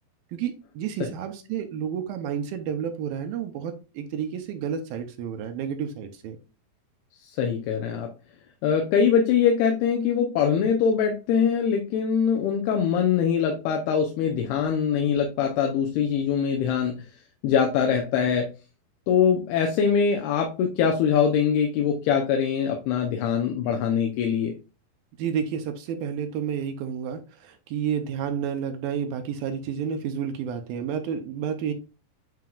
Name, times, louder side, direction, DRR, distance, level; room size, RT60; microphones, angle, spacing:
voice 1, 0.3-6.4 25.2-31.7, right 8 dB, 75° right, 2.4 m, -30 dB
voice 2, 7.4-8.1 8.6-16.9 17.4-18.5 19.1-24.5, left 7 dB, 85° left, 2.8 m, -23 dB
9.3 x 4.7 x 2.4 m
omnidirectional pair, 4.5 m